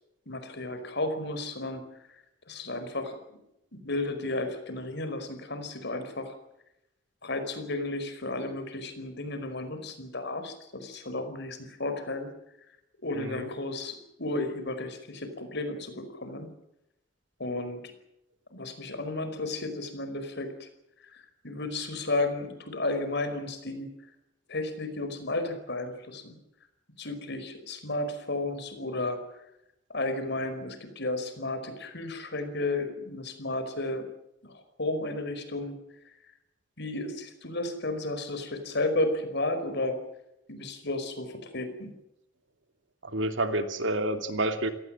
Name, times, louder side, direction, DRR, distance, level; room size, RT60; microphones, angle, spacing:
voice 1, 0.3-1.9 2.5-3.4 3.7-6.3 7.2-12.3 13.0-16.5 17.4-17.9 18.5-20.7 21.0-23.9 24.5-26.4 27.0-29.4 29.9-34.0 34.4-35.8 36.8-40.0 40.5-41.9, left 2 dB, 60° left, 9 dB, 5.0 m, -33 dB
voice 2, 13.2-13.5 43.0-44.7, right 1 dB, 70° right, 8 dB, 2.7 m, -29 dB
27.5 x 18.5 x 7.6 m, 0.83 s
head